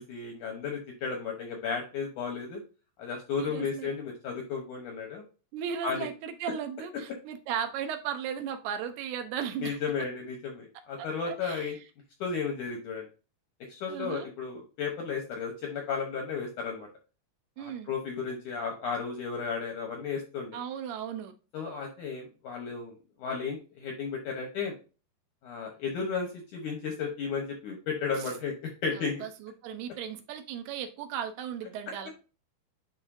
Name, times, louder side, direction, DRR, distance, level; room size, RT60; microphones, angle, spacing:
voice 1, 0.0-2.6 3.0-5.2 5.8-6.1 9.6-11.8 12.2-13.1 13.7-16.9 17.6-20.6 21.5-22.9 23.2-24.7 25.4-29.2, left 5 dB, 75° left, 2 dB, 1.9 m, -34 dB
voice 2, 3.3-3.9 5.5-9.8 11.0-11.7 13.9-14.3 17.6-17.9 20.5-21.3 29.0-32.1, right 8 dB, 80° right, 7 dB, 2.7 m, -36 dB
10.5 x 4.0 x 2.6 m, 0.33 s
omnidirectional pair, 4.7 m